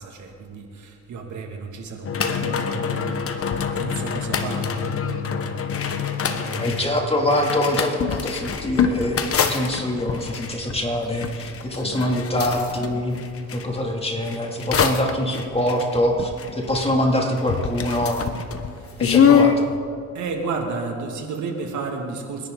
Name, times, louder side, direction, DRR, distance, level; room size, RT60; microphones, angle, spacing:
voice 1, 0.0-6.8 18.7-19.0 20.1-22.5, right 4 dB, 75° right, 2 dB, 2.5 m, -33 dB
sound 1, 2.0-13.7 14.2-17.1 17.4-19.6, left 7 dB, 50° left, 1.3 m, -25 dB
voice 2, 6.5-13.2 13.5-18.3 19.0-19.7, left 1 dB, 20° left, 0 dB, 2.9 m, -24 dB
29.0 x 11.0 x 4.1 m, 2.2 s
cardioid pair, 90°, 30 cm